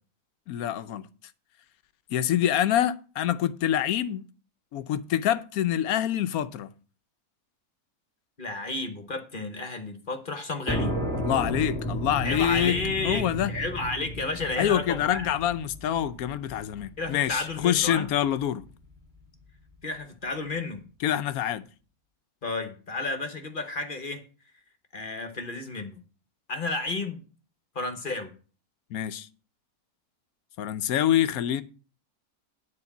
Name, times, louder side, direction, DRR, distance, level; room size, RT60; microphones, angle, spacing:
voice 1, 0.5-1.0 2.1-4.3 4.7-6.7 11.1-12.8 13.0-13.5 14.6-18.6 21.0-21.6 28.9-29.3 30.6-31.6, left 11 dB, 75° left, 1.1 m, -26 dB
voice 2, 8.4-11.0 12.2-15.3 17.0-18.1 19.8-20.8 22.4-24.2 24.9-26.0 26.5-27.2 27.7-28.3, left 3 dB, 40° left, 1.2 m, -32 dB
sound 1, 10.7-18.1, equal, ahead, 2.3 m, -33 dB
9.7 x 4.5 x 7.1 m
omnidirectional pair, 1.6 m